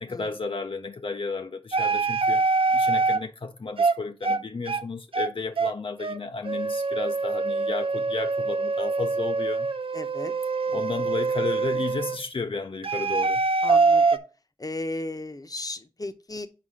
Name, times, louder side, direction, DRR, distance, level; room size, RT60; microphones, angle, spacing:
voice 1, 0.0-2.4 2.7-9.7 10.7-13.4, left 4 dB, 75° left, 0.5 m, -33 dB
sound 1, 1.7-3.2 3.8-3.9 4.2-4.4 4.7-4.8 5.1-5.3 5.6-5.7 6.0-6.2 6.4-12.2 12.8-14.2, right 4 dB, 85° right, 0.5 m, -24 dB
voice 2, 9.9-10.3 10.7-11.1 13.6-14.2 14.6-16.5, left 2 dB, 45° left, 0.7 m, -35 dB
5.8 x 4.8 x 4.9 m
wide cardioid pair, 60°, 9 cm